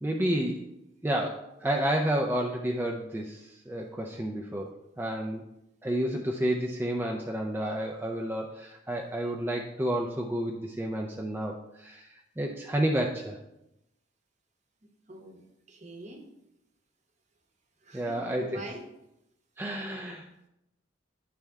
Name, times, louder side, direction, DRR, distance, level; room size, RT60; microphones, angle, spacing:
voice 1, 0.0-0.6 1.0-5.4 5.8-13.4 17.9-18.6 19.6-20.5, right 1 dB, 10° right, 0 dB, 0.4 m, -30 dB
voice 2, 14.8-15.4 15.7-16.3 17.8-18.8, right 1 dB, 40° right, 3 dB, 0.9 m, -44 dB
9.8 x 3.4 x 3.5 m, 0.87 s
head